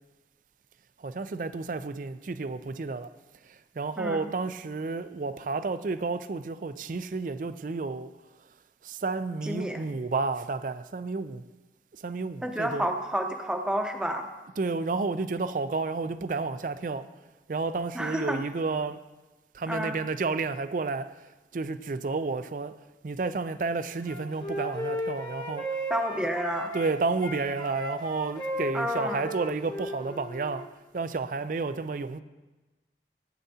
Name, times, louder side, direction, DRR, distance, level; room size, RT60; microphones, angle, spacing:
voice 1, 1.0-3.1 3.8-8.1 8.8-11.4 12.0-12.9 14.6-17.1 17.5-19.0 19.5-21.1 21.5-22.7 23.0-25.7 26.2-26.3 26.7-30.7 30.9-32.2, right 3 dB, 50° right, 0.4 m, -31 dB
voice 2, 4.0-4.3 9.4-9.8 12.4-14.3 17.9-18.4 19.7-20.0 25.9-26.7 28.7-29.3, equal, 5° right, 0.7 m, -30 dB
Wind instrument woodwind instrument, 24.0-26.9 27.2-30.7, equal, 25° left, 1.0 m, -35 dB
15.0 x 9.1 x 2.8 m
head